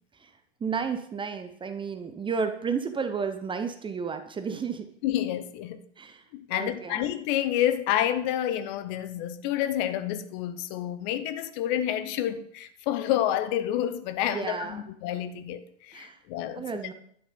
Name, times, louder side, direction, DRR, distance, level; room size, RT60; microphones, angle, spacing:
voice 1, 0.6-4.9 6.0-6.2 6.5-7.0 14.3-14.8 15.9-16.2 16.5-16.9, right 6 dB, 15° right, 0.8 m, -32 dB
voice 2, 5.0-5.8 6.3-16.6, left 11 dB, 40° left, 1.0 m, -29 dB
11.0 x 7.3 x 6.9 m
figure-of-eight pair, 95°, 36 cm